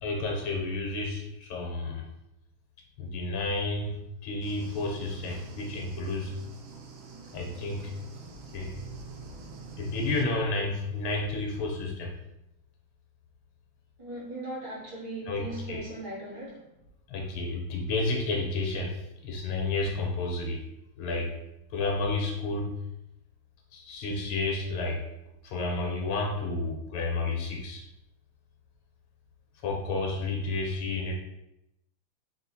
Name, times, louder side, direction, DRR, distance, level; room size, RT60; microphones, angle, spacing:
voice 1, 0.0-2.0 3.0-6.3 7.3-7.9 8.5-8.7 9.8-12.1 15.3-15.8 17.1-19.0 19.2-20.6 21.0-21.3 21.7-22.7 23.7-25.0 25.4-27.9 29.6-31.1, left 2 dB, 80° left, 1 dB, 1.4 m, -31 dB
sound 1, 4.4-10.3, right 4 dB, 80° right, 1.4 m, -45 dB
voice 2, 14.0-16.7, right 2 dB, 60° right, -6 dB, 1.4 m, -39 dB
3.6 x 2.5 x 2.6 m, 0.88 s
omnidirectional pair, 2.2 m